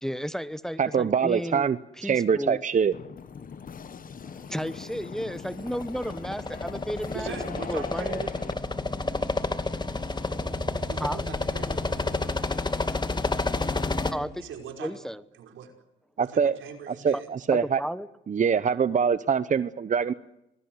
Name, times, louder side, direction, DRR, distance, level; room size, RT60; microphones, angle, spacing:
voice 1, 0.0-1.7 2.0-2.6 4.2-8.2 11.0-11.2 14.1-14.4 14.8-15.2 17.1-17.2 17.5-18.1, equal, ahead, 15 dB, 1.0 m, -33 dB
voice 2, 0.8-2.9 16.2-16.5 16.9-17.8 18.3-20.1, right 6 dB, 40° right, 14 dB, 0.9 m, -24 dB
sound 1, 2.9-8.5, left 6 dB, 45° left, 1.7 m, -41 dB
sound 2, 5.4-14.1, left 3 dB, 20° left, 2.6 m, -30 dB
voice 3, 7.1-8.3 10.9-11.9 14.4-14.9 15.4-15.7 16.2-17.3, right 8 dB, 80° right, 5 dB, 5.4 m, -40 dB
27.0 x 20.0 x 8.0 m, 0.87 s
cardioid pair, 90°, 20 cm